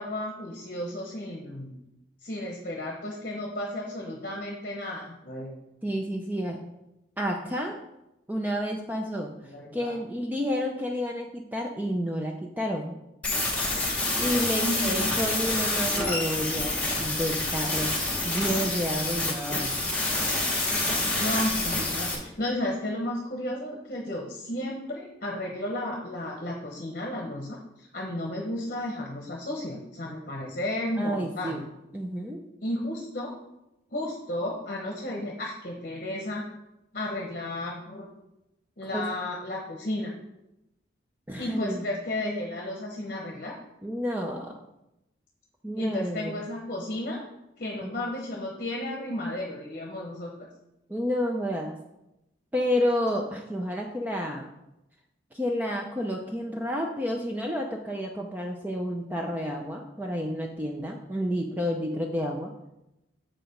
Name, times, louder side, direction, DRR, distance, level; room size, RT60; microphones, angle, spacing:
voice 1, 0.0-1.8 2.2-5.6 9.4-10.0 13.7-13.9 14.6-15.1 21.1-31.6 32.6-33.3 33.9-36.5 36.9-38.1 38.8-40.1 41.4-43.5 45.8-47.2 47.6-50.5, left 1 dB, 50° left, 0 dB, 1.0 m, -33 dB
voice 2, 5.8-6.6 7.2-7.8 8.3-9.3 9.7-12.9 14.2-18.0 18.2-19.9 31.0-31.7 31.9-32.4 38.9-39.0 41.3-41.8 43.8-44.5 45.6-46.4 47.8-48.1 50.9-51.7 52.5-54.5 55.3-62.5, equal, 10° right, 1 dB, 0.5 m, -30 dB
sound 1, 13.2-22.1, left 2 dB, 5° left, 2.2 m, -27 dB
7.5 x 4.9 x 5.1 m, 0.90 s
head